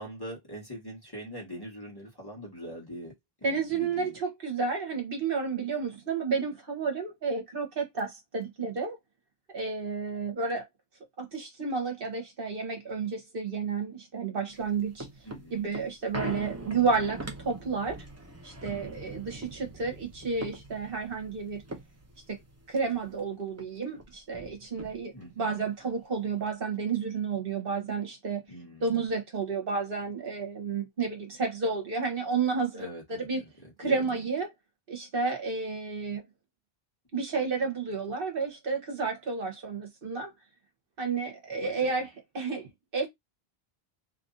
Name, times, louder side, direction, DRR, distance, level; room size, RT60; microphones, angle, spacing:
voice 1, 0.0-3.1 3.4-4.2 15.2-15.6 25.1-25.5 28.5-28.9 32.7-34.1 41.6-41.9, equal, 20° left, 1.5 m, -43 dB
voice 2, 3.4-9.0 9.5-10.7 11.2-15.1 15.5-18.0 18.4-21.6 22.3-22.4 22.7-28.4 28.8-33.4 33.8-34.5 34.9-36.3 37.1-40.3 41.0-43.1, right 4 dB, 60° right, 1.2 m, -31 dB
sound 1, 14.5-23.2 23.6-23.7 23.9-25.3 25.8-25.9, right 1 dB, 15° right, 0.7 m, -42 dB
3.0 x 2.6 x 3.8 m
omnidirectional pair, 1.1 m